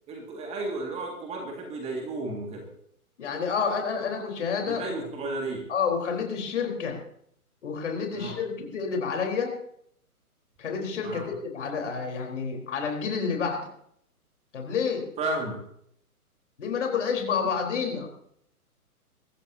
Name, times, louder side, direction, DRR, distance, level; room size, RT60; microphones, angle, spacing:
voice 1, 0.1-2.6 4.7-5.6 8.2-8.3 11.0-11.3 15.2-15.6, right 2 dB, 15° right, 1 dB, 2.0 m, -33 dB
voice 2, 3.2-4.8 5.7-7.0 7.6-9.5 10.6-13.6 14.5-15.1 16.6-18.1, left 6 dB, 50° left, 2 dB, 4.1 m, -29 dB
24.0 x 14.0 x 2.8 m, 0.69 s
figure-of-eight pair, 125°, 45 cm